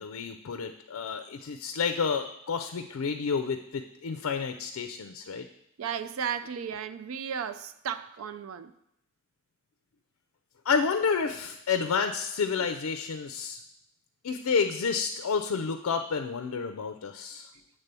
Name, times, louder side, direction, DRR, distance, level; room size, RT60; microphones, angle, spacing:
voice 1, 0.0-5.5 10.6-13.6 14.2-17.5, left 5 dB, 85° left, 8 dB, 0.4 m, -30 dB
voice 2, 5.8-8.7, right 7 dB, 75° right, 12 dB, 0.4 m, -34 dB
8.1 x 3.6 x 6.7 m, 0.80 s
head